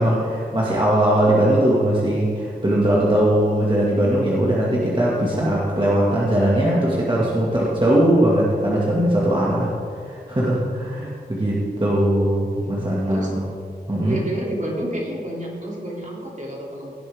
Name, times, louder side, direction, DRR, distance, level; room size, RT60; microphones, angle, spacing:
voice 1, 0.0-9.7 10.0-13.4 13.9-14.2, right 1 dB, 30° right, -6 dB, 2.0 m, -20 dB
voice 2, 14.0-16.9, right 1 dB, 50° right, -3 dB, 2.9 m, -29 dB
17.5 x 7.8 x 3.6 m, 2.3 s
wide cardioid pair, 60°, 16 cm